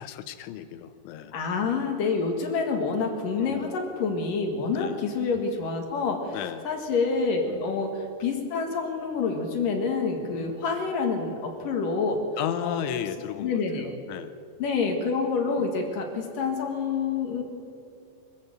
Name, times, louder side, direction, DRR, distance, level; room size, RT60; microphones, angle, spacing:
voice 1, 0.0-1.4 3.4-3.8 4.7-5.0 6.3-6.7 7.5-7.7 10.3-10.6 12.4-14.3 15.5-15.7, left 10 dB, 90° left, 11 dB, 3.3 m, -35 dB
voice 2, 1.3-6.4 6.6-12.2 12.6-12.8 13.4-14.0 14.6-17.4, left 4 dB, 55° left, 3 dB, 3.1 m, -27 dB
23.5 x 14.5 x 7.8 m, 2.5 s
omnidirectional pair, 5.4 m